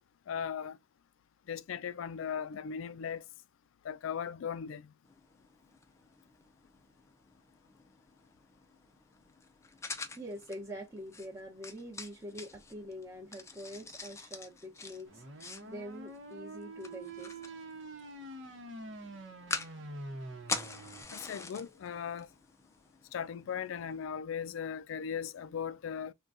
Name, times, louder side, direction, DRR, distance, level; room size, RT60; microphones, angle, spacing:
voice 1, 0.3-0.8 1.5-3.2 3.8-4.9 21.1-22.3 23.1-26.1, left 7 dB, 90° left, 0.4 m, -38 dB
sound 1, 5.0-24.1, left 3 dB, 15° left, 0.4 m, -46 dB
voice 2, 10.2-15.2 15.6-17.5, equal, 15° right, 0.8 m, -45 dB
sound 2, 15.1-21.0, right 2 dB, 75° right, 0.9 m, -46 dB
3.7 x 2.2 x 2.5 m
head